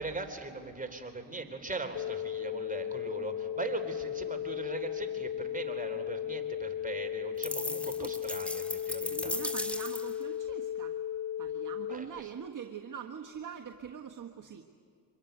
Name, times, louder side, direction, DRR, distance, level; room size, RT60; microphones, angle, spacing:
voice 1, 0.0-9.3 11.9-12.3, right 3 dB, 15° right, 5 dB, 3.8 m, -40 dB
sound 1, 1.9-11.9, left 10 dB, 45° left, 0.7 m, -36 dB
sound 2, 7.4-10.2, equal, ahead, 1.8 m, -37 dB
voice 2, 8.8-11.0 11.4-14.6, right 8 dB, 40° right, 3 dB, 1.6 m, -43 dB
24.5 x 22.0 x 9.4 m, 2.1 s
hypercardioid pair, 60°, 50 cm